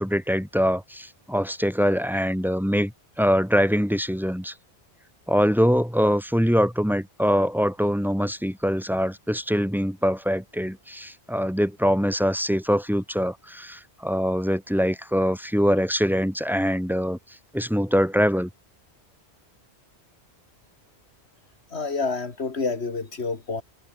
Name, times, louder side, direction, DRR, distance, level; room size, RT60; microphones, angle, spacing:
voice 1, 0.0-2.9 3.2-4.5 5.3-17.2 17.5-18.5, equal, ahead, 2.0 m, -23 dB
voice 2, 21.7-23.6, left 4 dB, 75° left, 2.5 m, -28 dB
omnidirectional pair, 1.1 m